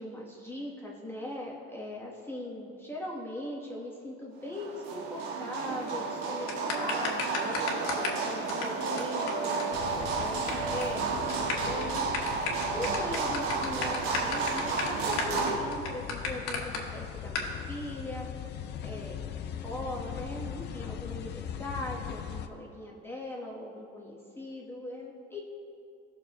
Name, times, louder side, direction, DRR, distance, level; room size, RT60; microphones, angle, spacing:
voice 1, 0.0-6.5 6.7-9.6 10.1-12.1 12.7-18.3 18.8-19.2 19.6-25.4, left 1 dB, 10° left, -3 dB, 1.0 m, -40 dB
sound 1, 4.5-15.6, right 4 dB, 80° right, 1.3 m, -32 dB
sound 2, 6.5-8.2 8.5-8.6 9.0-9.1 9.3-9.4 9.6-9.7 9.9-10.5 10.8-11.0 11.3-16.8 17.3-17.5, left 5 dB, 60° left, 1.6 m, -33 dB
sound 3, 9.7-22.5, left 9 dB, 35° left, 0.5 m, -40 dB
17.0 x 6.4 x 2.9 m, 2.5 s
cardioid pair, 135°, 29 cm